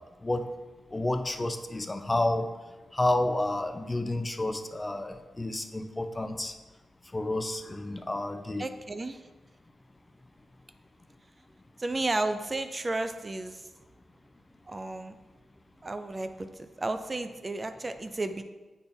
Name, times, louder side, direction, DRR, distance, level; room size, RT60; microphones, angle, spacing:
voice 1, 0.9-2.5 2.9-6.5 7.1-8.6, left 1 dB, 25° left, 8 dB, 0.6 m, -30 dB
voice 2, 8.6-9.2 11.8-13.7 14.7-15.2 15.8-18.4, right 2 dB, 35° right, 9 dB, 0.5 m, -33 dB
8.0 x 3.3 x 4.3 m, 1.2 s
cardioid pair, 55°, 0 cm